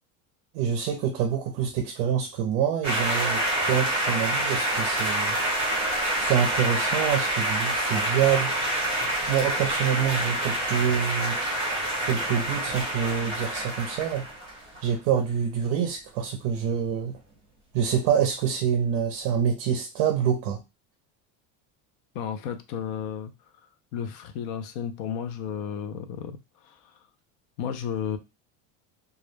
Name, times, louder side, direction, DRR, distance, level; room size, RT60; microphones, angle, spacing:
voice 1, 0.5-5.4 6.2-8.6 9.3-11.4 12.0-14.2 14.8-17.2 17.7-20.6, right 8 dB, 55° right, 5 dB, 0.5 m, -26 dB
sound 1, 2.8-14.9, right 1 dB, 15° right, 0.9 m, -27 dB
voice 2, 22.1-23.3 23.9-26.4 26.6-26.9 27.6-28.2, left 8 dB, 55° left, 8 dB, 0.5 m, -33 dB
2.3 x 2.0 x 3.1 m, 0.25 s
cardioid pair, 175°, 39 cm